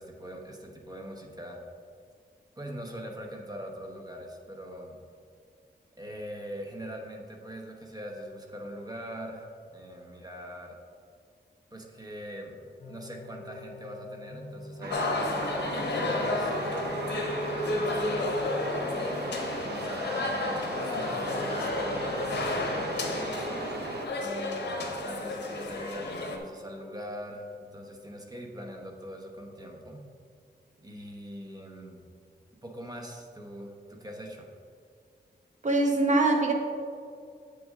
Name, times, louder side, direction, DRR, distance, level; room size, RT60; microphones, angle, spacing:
voice 1, 0.0-1.6 2.6-5.0 6.0-10.8 11.7-18.3 18.9-23.5 24.1-30.1 30.8-32.0 32.6-34.5, equal, 20° right, 1 dB, 1.0 m, -42 dB
sound 1, 12.8-19.4, left 1 dB, 45° left, 0.5 m, -44 dB
sound 2, 14.8-24.1, right 3 dB, 75° right, 0.7 m, -37 dB
sound 3, 14.9-26.4, left 2 dB, 85° left, 0.9 m, -32 dB
voice 2, 35.6-36.5, right 2 dB, 45° right, 3 dB, 1.0 m, -23 dB
7.8 x 6.5 x 3.7 m, 2.2 s
wide cardioid pair, 115°, 17 cm